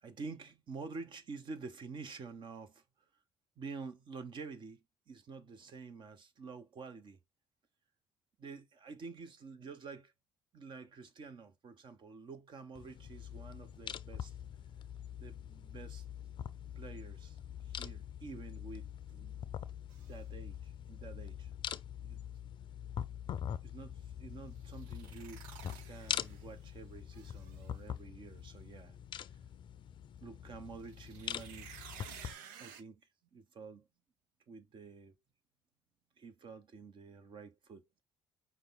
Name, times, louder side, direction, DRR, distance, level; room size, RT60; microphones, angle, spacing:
voice 1, 0.0-2.8 3.6-7.2 8.4-10.1 10.5-14.5 15.2-16.0 16.7-17.4 17.6-19.5 20.1-21.5 22.0-22.2 23.6-25.4 25.8-29.0 29.3-29.4 30.2-32.3 32.6-33.0 33.3-33.8 34.5-35.1 36.2-38.0, right 4 dB, 50° right, 1.1 m, -49 dB
sound 1, 12.8-32.3, left 9 dB, 50° left, 0.5 m, -44 dB
sound 2, 19.9-20.2 24.6-26.7 27.1-27.8 30.8-32.8, right 8 dB, 90° right, 0.6 m, -53 dB
5.7 x 2.3 x 3.7 m
supercardioid pair, 65°, 10 cm